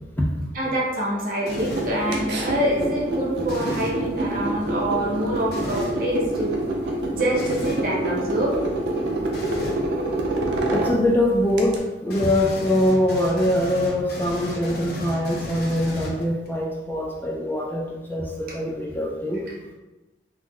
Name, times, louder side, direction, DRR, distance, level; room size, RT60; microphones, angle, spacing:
voice 1, 0.5-6.5 7.1-8.5, right 1 dB, 50° right, -5 dB, 0.9 m, -25 dB
sound 1, 1.5-2.0 3.4-4.0 5.5-6.0 7.4-7.9 9.3-9.8 12.1-16.5, left 1 dB, 60° left, 0.6 m, -35 dB
sound 2, 1.5-11.8, right 1 dB, 65° right, 0.5 m, -27 dB
voice 2, 10.7-19.4, left 1 dB, 10° left, -2 dB, 0.3 m, -23 dB
3.0 x 2.0 x 3.7 m, 1.1 s
head